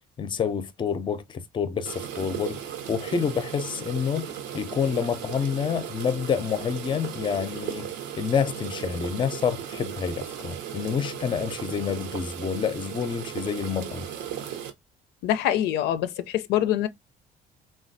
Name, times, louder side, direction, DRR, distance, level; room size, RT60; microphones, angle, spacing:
voice 1, 0.2-2.6 2.9-4.3 4.5-14.1, left 7 dB, 30° left, 0.5 m, -28 dB
sound 1, 1.8-14.7, right 9 dB, 85° right, 0.8 m, -36 dB
voice 2, 15.2-16.9, left 11 dB, 85° left, 0.4 m, -24 dB
3.2 x 2.2 x 2.5 m
cardioid pair, 110°, 17 cm